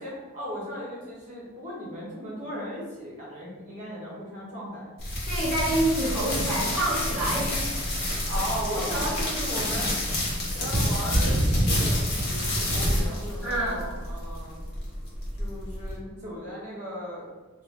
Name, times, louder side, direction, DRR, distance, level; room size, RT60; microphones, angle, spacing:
voice 1, 0.0-4.9 8.3-9.9 10.4-14.6 15.4-17.3, equal, 35° right, -6 dB, 1.1 m, -36 dB
sound 1, 5.0-16.0, equal, 50° left, 0.9 m, -28 dB
voice 2, 5.3-7.7 8.9-9.1 13.4-13.8, right 1 dB, ahead, -11 dB, 1.0 m, -27 dB
3.4 x 2.4 x 3.5 m, 1.3 s
head